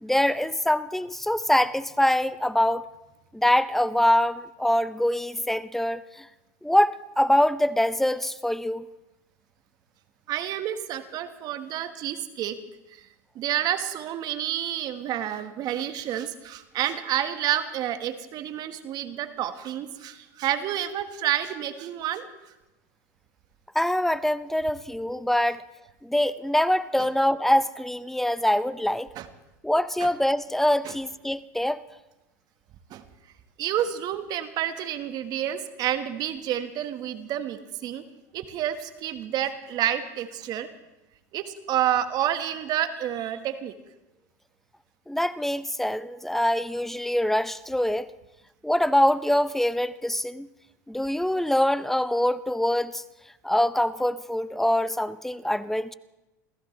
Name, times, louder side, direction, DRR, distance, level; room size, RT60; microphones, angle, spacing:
voice 1, 0.0-2.9 3.3-6.3 6.6-8.9 23.7-25.6 26.0-29.1 29.6-31.8 45.1-48.1 48.6-50.5 50.9-53.0 53.4-55.9, left 1 dB, 5° left, 0.5 m, -24 dB
voice 2, 10.3-12.6 12.9-13.1 13.3-22.3 27.0-27.1 29.1-29.3 30.0-30.1 30.8-31.0 32.9-33.0 33.6-38.0 38.3-40.7 41.3-43.7, right 11 dB, 50° right, 1.4 m, -29 dB
28.5 x 15.0 x 3.2 m
hypercardioid pair, 100°, 9 cm